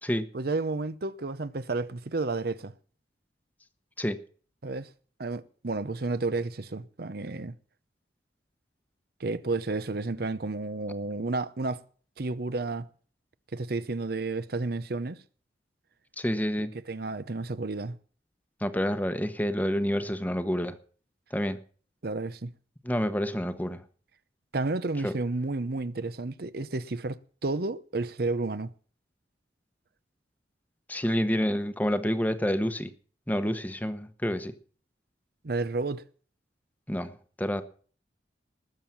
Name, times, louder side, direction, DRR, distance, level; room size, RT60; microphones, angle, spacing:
voice 1, 0.3-2.7 4.6-4.9 5.2-7.5 9.2-11.8 12.2-12.9 13.5-15.2 16.9-18.0 22.0-22.5 24.5-28.7 35.4-36.0, right 3 dB, 55° right, 0.7 m, -31 dB
voice 2, 16.2-16.7 18.6-20.8 21.3-21.6 22.8-23.8 25.0-25.1 30.9-32.9 33.3-34.5 36.9-37.1 37.4-37.6, equal, 10° left, 1.0 m, -28 dB
19.5 x 7.3 x 6.0 m
head